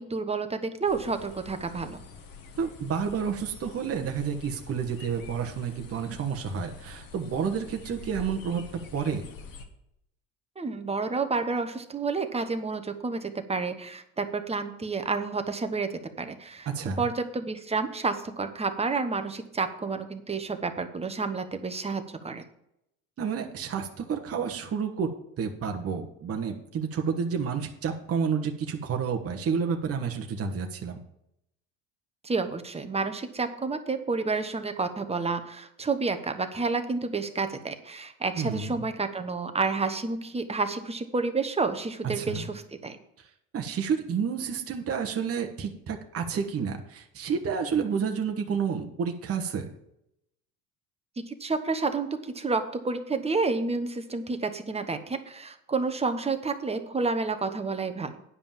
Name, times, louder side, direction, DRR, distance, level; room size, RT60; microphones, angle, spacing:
voice 1, 0.0-2.0 10.6-16.7 17.0-22.4 32.2-43.0 51.3-58.2, right 4 dB, 15° right, 7 dB, 1.2 m, -30 dB
sound 1, 0.9-9.7, left 5 dB, 60° left, 1.6 m, -46 dB
voice 2, 2.6-8.6 8.9-9.2 16.7-17.0 23.2-25.1 25.4-31.0 38.3-38.7 42.1-42.5 43.2-43.3 43.5-49.6, right 6 dB, 35° right, 3 dB, 1.2 m, -30 dB
9.9 x 5.3 x 7.3 m, 0.80 s
supercardioid pair, 85°, 38 cm